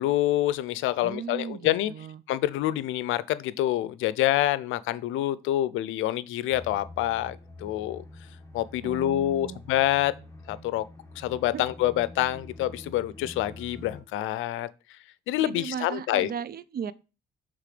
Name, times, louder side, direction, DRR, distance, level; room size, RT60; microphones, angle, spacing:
voice 1, 0.0-1.9 2.3-8.0 8.5-10.1 10.5-10.9 11.2-14.7 15.3-16.3, left 14 dB, 90° left, 0.5 m, -27 dB
voice 2, 1.0-2.2 8.8-9.6 11.5-11.6 15.4-16.9, right 7 dB, 50° right, 0.5 m, -36 dB
sound 1, 6.5-14.0, left 2 dB, 15° left, 1.2 m, -46 dB
6.7 x 3.5 x 5.0 m
cardioid pair, 90°, 20 cm